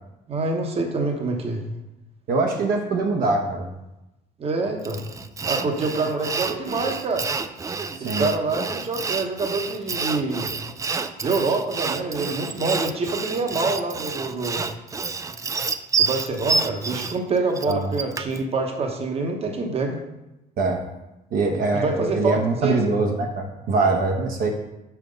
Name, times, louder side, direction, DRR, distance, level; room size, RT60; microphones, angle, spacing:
voice 1, 0.3-1.6 4.4-5.0 5.5-7.3 8.0-10.5 11.2-14.6 16.0-20.0 21.7-22.9, right 3 dB, 35° right, 3 dB, 1.0 m, -26 dB
voice 2, 2.3-3.7 8.0-8.3 17.7-18.0 20.6-20.8 21.3-24.5, right 3 dB, 60° right, 2 dB, 0.9 m, -23 dB
Sawing, 4.9-18.4, right 5 dB, 20° right, 0.3 m, -28 dB
5.8 x 4.4 x 5.2 m, 0.95 s
cardioid pair, 110°, 17 cm